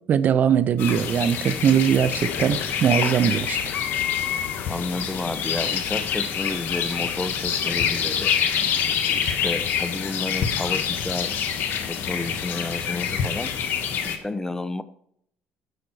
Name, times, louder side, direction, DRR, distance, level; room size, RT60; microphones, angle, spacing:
voice 1, 0.1-3.6, right 8 dB, 50° right, 0.6 m, -21 dB
sound 1, 0.8-14.2, left 8 dB, 65° left, 1.5 m, -26 dB
voice 2, 4.7-8.3 9.1-11.4 11.8-13.6 14.0-14.8, left 2 dB, 15° left, 0.8 m, -31 dB
15.0 x 5.9 x 4.8 m
supercardioid pair, 75°, 4 cm